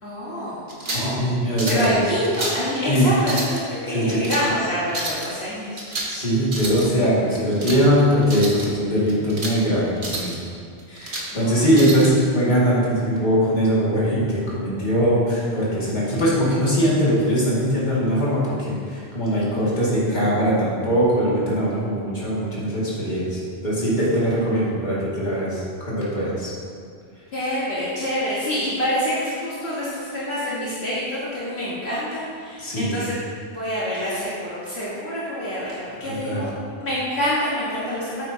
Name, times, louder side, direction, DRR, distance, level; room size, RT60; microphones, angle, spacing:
voice 1, 0.0-1.2 1.6-5.7 11.3-11.6 27.3-33.2 33.5-36.5 36.8-38.2, equal, 65° left, -9 dB, 1.8 m, -26 dB
sound 1, 0.7-1.1 1.6-1.9 2.2-2.6 3.2-3.6 4.1-4.4 4.9-5.3 5.8-6.2 6.4-6.9 7.3-7.8 8.2-8.7 9.1-9.6 10.0-10.4 10.8-11.3 11.7-12.1, right 2 dB, 50° right, 1.4 m, -30 dB
voice 2, 0.9-2.0 2.9-3.1 3.9-4.4 6.1-10.3 10.9-26.5 32.6-33.0 36.0-36.4, equal, 45° left, -8 dB, 2.3 m, -21 dB
9.2 x 8.8 x 2.8 m, 2.2 s
omnidirectional pair, 1.1 m